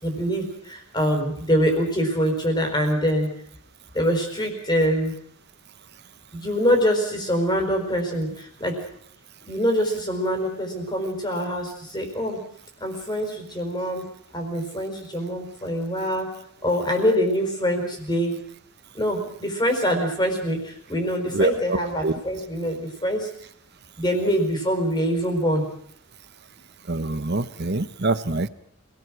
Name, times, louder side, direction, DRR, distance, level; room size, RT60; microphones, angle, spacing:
voice 1, 0.0-3.3 3.9-5.1 6.3-8.7 9.5-12.4 12.8-14.0 14.3-16.3 16.6-18.4 18.9-23.3 24.0-25.6, equal, 20° left, 3 dB, 4.9 m, -24 dB
voice 2, 21.3-22.1 26.9-28.5, right 2 dB, 50° right, 13 dB, 1.0 m, -25 dB
27.0 x 18.5 x 6.4 m, 0.67 s
head